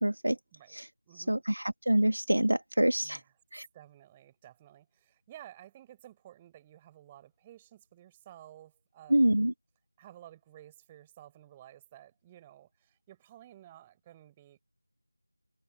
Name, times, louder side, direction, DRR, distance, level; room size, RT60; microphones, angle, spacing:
voice 1, 0.0-0.4 0.7-0.9 1.2-3.2 3.5-3.7 9.1-9.5, right 1 dB, 70° right, 1.6 m, -26 dB
voice 2, 1.1-1.4 3.0-3.2 3.7-9.3 10.0-14.6, right 12 dB, 10° right, 4.3 m, -54 dB
figure-of-eight pair, 170°, 0 cm